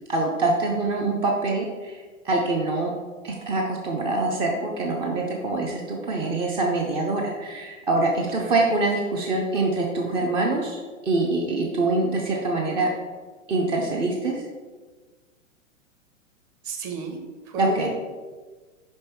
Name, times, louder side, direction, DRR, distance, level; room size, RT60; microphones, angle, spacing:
voice 1, 0.1-2.9 3.2-12.9 13.5-14.4 17.6-17.9, right 2 dB, 15° right, 0 dB, 0.4 m, -25 dB
voice 2, 8.3-8.7 16.6-17.2 17.4-17.9, right 3 dB, 40° right, 3 dB, 1.2 m, -32 dB
5.3 x 5.2 x 4.5 m, 1.4 s
hypercardioid pair, 110°, 39 cm